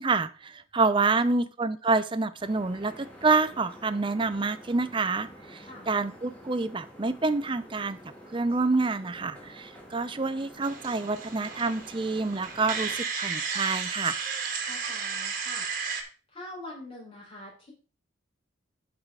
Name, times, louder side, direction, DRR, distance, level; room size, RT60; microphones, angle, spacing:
voice 1, 0.0-8.0 8.3-14.2, right 3 dB, 25° right, 13 dB, 0.5 m, -27 dB
voice 2, 1.0-1.5 5.6-5.9 14.6-15.7 16.3-17.7, left 1 dB, 30° left, -3 dB, 4.1 m, -44 dB
sound 1, 2.4-13.0, equal, 5° left, 1.8 m, -49 dB
sound 2, 10.6-16.0, right 5 dB, 45° right, 1.4 m, -33 dB
12.0 x 4.9 x 3.7 m, 0.37 s
head